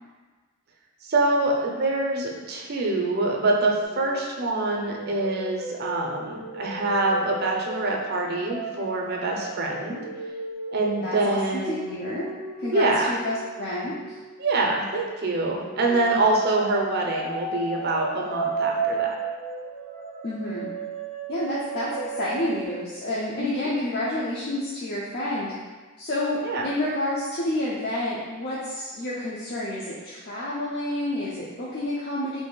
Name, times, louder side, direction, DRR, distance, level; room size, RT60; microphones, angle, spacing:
voice 1, 1.0-10.0 10.7-12.0 12.7-13.1 14.4-19.1 23.4-23.7 26.4-26.7, right 2 dB, 45° right, 0 dB, 0.5 m, -25 dB
sound 1, 3.8-14.9 15.5-22.7, right 3 dB, 85° left, 1.2 m, -35 dB
voice 2, 11.0-11.4 11.7-12.2 12.6-13.9 20.2-20.7 21.3-21.9 22.2-25.5 26.0-32.4, left 1 dB, 50° left, -7 dB, 0.4 m, -29 dB
2.9 x 2.6 x 3.7 m, 1.3 s
head